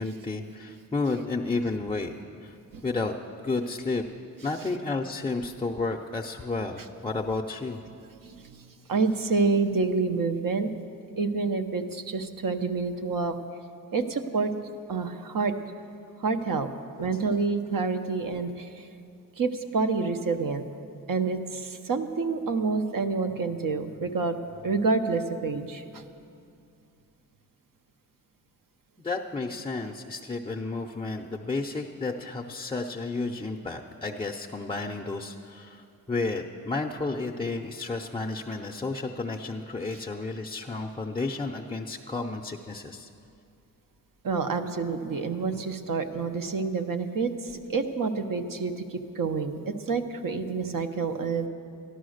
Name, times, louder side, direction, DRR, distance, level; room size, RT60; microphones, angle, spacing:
voice 1, 0.0-2.1 2.4-2.6 2.8-3.1 3.4-4.0 4.4-7.8 29.0-43.1, left 3 dB, 15° left, 2 dB, 0.4 m, -32 dB
voice 2, 8.2-10.7 11.2-13.4 13.9-14.5 14.9-15.5 16.2-16.7 17.0-18.9 19.4-20.6 21.1-26.0 44.2-51.5, right 4 dB, 70° right, 7 dB, 0.8 m, -28 dB
13.5 x 11.5 x 6.4 m, 2.5 s
wide cardioid pair, 170°, 34 cm